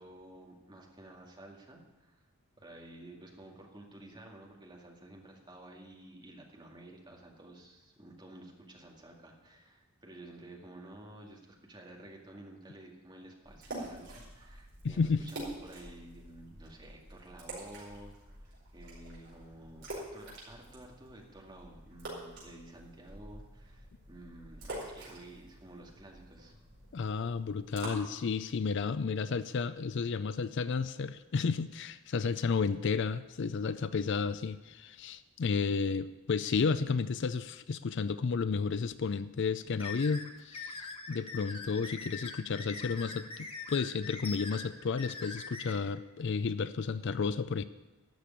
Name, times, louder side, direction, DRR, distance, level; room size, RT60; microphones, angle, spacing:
voice 1, 0.0-2.2 2.6-26.6 32.6-32.8, right 1 dB, 20° right, 0 dB, 2.1 m, -52 dB
sound 1, 13.4-27.9, right 1 dB, 50° right, 5.1 m, -47 dB
voice 2, 14.8-15.2 26.9-47.6, left 5 dB, 55° left, 14 dB, 0.4 m, -32 dB
sound 2, 39.8-45.7, left 4 dB, 25° left, 1.2 m, -43 dB
12.5 x 6.8 x 10.0 m, 1.1 s
head